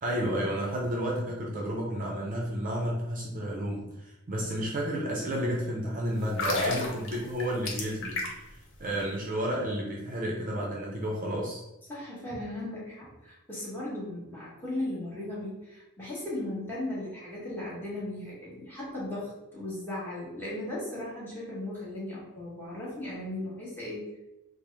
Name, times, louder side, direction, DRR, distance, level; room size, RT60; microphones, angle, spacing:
voice 1, 0.0-8.2 8.8-11.6, equal, 40° right, -2 dB, 0.6 m, -31 dB
sound 1, 6.2-8.6 8.8-9.0, left 2 dB, 60° left, 0.8 m, -31 dB
voice 2, 11.9-24.1, left 1 dB, 10° left, -8 dB, 1.3 m, -37 dB
4.7 x 2.0 x 3.3 m, 0.97 s
head